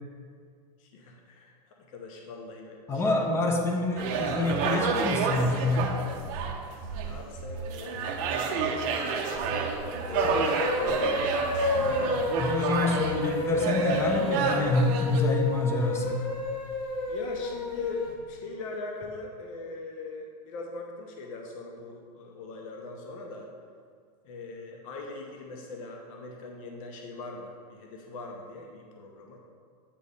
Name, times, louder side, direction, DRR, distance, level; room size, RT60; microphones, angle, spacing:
voice 1, 0.8-3.3 7.0-11.5 17.1-23.5 24.2-29.4, left 3 dB, 55° left, 1 dB, 0.9 m, -41 dB
voice 2, 2.9-5.9 12.4-16.2, left 2 dB, 10° left, 2 dB, 0.6 m, -27 dB
sound 1, 4.0-15.2, right 5 dB, 35° right, 0.6 m, -30 dB
sound 2, 10.0-18.2, left 3 dB, 75° left, 1.2 m, -30 dB
8.4 x 3.1 x 5.4 m, 2.1 s
supercardioid pair, 160°, 21 cm